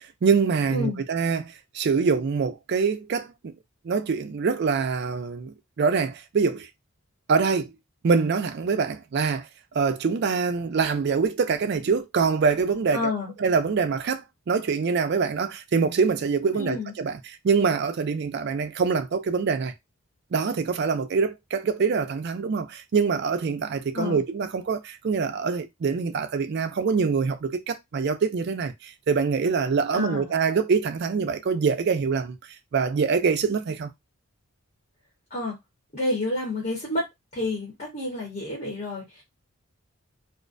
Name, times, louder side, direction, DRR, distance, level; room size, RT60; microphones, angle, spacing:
voice 1, 0.2-3.5 3.8-6.7 7.3-7.7 8.0-9.5 9.7-13.1 13.4-17.2 17.4-19.7 20.3-32.4 32.7-33.9, right 5 dB, 50° right, 0.3 m, -24 dB
voice 2, 12.9-13.3 16.5-16.9 23.9-24.2 29.9-30.3 35.3-35.6 35.9-39.2, left 2 dB, 35° left, 0.9 m, -29 dB
2.4 x 2.1 x 2.4 m
head